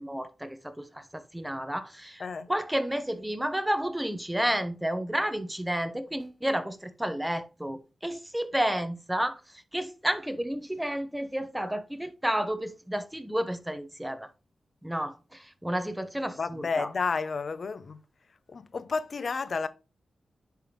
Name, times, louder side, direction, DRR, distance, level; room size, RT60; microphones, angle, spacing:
voice 1, 0.0-2.2 2.5-9.4 9.7-14.3 14.8-16.9, right 1 dB, 10° right, 0.9 m, -31 dB
voice 2, 2.2-2.5 16.4-18.0 18.5-19.7, left 4 dB, 60° left, 0.6 m, -31 dB
10.0 x 3.5 x 3.0 m
cardioid pair, 60°, 0 cm